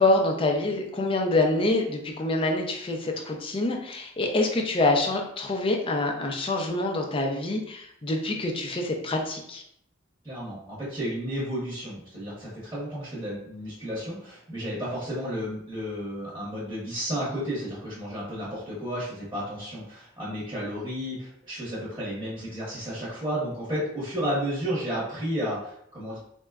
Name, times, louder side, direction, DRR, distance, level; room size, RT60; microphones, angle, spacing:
voice 1, 0.0-9.6, left 2 dB, 30° left, 2 dB, 0.4 m, -26 dB
voice 2, 10.2-26.2, equal, 15° right, -8 dB, 0.9 m, -32 dB
3.9 x 2.2 x 2.3 m, 0.71 s
head